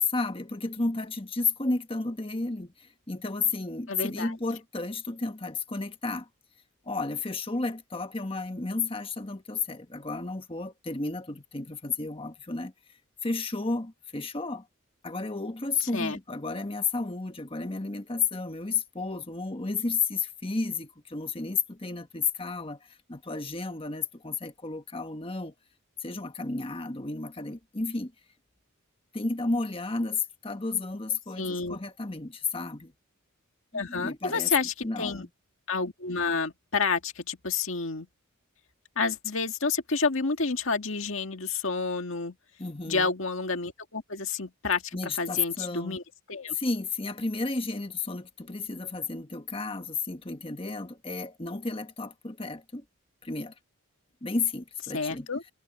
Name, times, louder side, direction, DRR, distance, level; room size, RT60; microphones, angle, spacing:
voice 1, 0.0-6.3 6.8-12.7 13.2-14.7 15.0-25.5 26.0-28.1 29.1-32.9 33.7-34.5 34.8-35.3 42.6-43.1 44.9-46.0 46.5-52.8 53.2-53.5 54.2-55.3, left 4 dB, 25° left, 1.3 m, -32 dB
voice 2, 3.9-4.3 15.9-16.2 31.4-31.8 33.7-35.3 35.7-38.1 39.0-42.4 42.9-46.0 46.3-46.6 54.9-55.4, left 4 dB, 65° left, 2.0 m, -29 dB
head